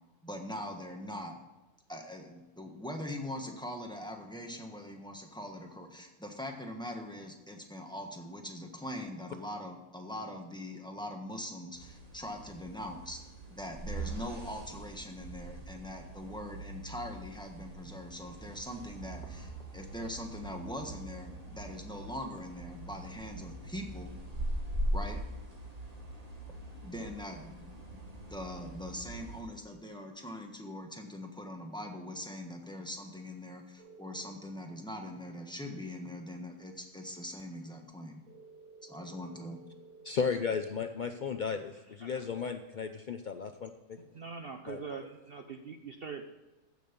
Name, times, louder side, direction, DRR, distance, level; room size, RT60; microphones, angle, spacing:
voice 1, 0.2-1.4 1.9-13.2 13.5-24.2 24.9-25.2 26.8-38.2 38.8-39.6, left 1 dB, 5° left, 2 dB, 1.2 m, -42 dB
sound 1, 11.7-29.4, right 1 dB, 25° right, 1.8 m, -41 dB
sound 2, 33.8-34.3 38.3-40.1, right 3 dB, 80° right, 3.3 m, -54 dB
voice 2, 40.0-43.7 44.7-44.8, left 6 dB, 90° left, 7 dB, 0.4 m, -34 dB
voice 3, 44.1-46.3, right 5 dB, 50° right, 5 dB, 0.7 m, -43 dB
15.0 x 6.4 x 5.3 m, 1.1 s
omnidirectional pair, 1.6 m